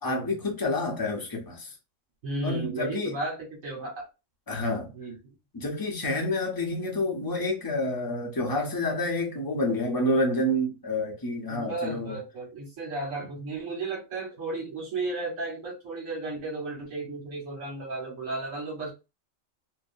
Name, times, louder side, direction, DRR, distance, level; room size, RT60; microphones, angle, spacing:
voice 1, 0.0-1.8 2.4-3.2 4.5-4.9 5.5-12.2, left 1 dB, 25° left, 0.5 m, -28 dB
voice 2, 2.2-4.0 4.9-5.3 11.5-18.9, right 3 dB, 75° right, 1.4 m, -34 dB
2.8 x 2.2 x 2.5 m
omnidirectional pair, 1.4 m